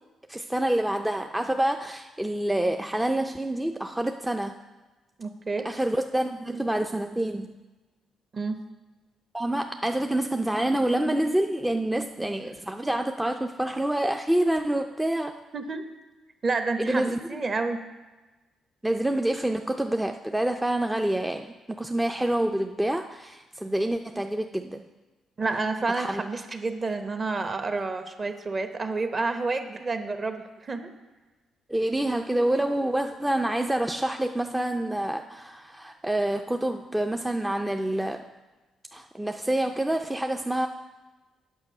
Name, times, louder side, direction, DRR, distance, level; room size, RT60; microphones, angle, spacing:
voice 1, 0.3-4.5 5.6-7.6 9.3-15.3 16.8-17.2 18.8-21.5 21.8-24.8 26.0-26.2 31.7-38.3 38.9-40.7, right 1 dB, 10° right, 4 dB, 0.4 m, -27 dB
voice 2, 5.2-5.7 8.3-8.6 15.5-15.8 16.4-17.8 25.4-30.9, right 3 dB, 35° right, 7 dB, 0.9 m, -29 dB
8.2 x 6.7 x 5.4 m, 1.2 s
cardioid pair, 90°, 0 cm